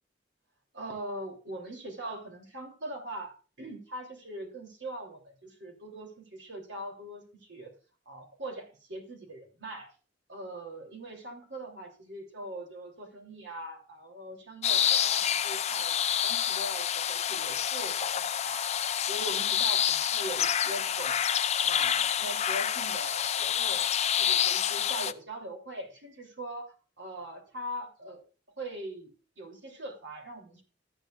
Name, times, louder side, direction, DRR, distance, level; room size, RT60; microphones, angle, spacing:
voice 1, 0.7-3.3 3.6-7.2 7.5-7.7 8.1-9.9 10.3-18.6 19.1-21.2 21.6-23.9 24.2-28.2 28.6-30.6, right 1 dB, 70° right, 2 dB, 3.0 m, -41 dB
sound 1, 14.6-25.1, left 9 dB, 35° left, 0.4 m, -28 dB
14.0 x 9.1 x 2.4 m, 0.34 s
head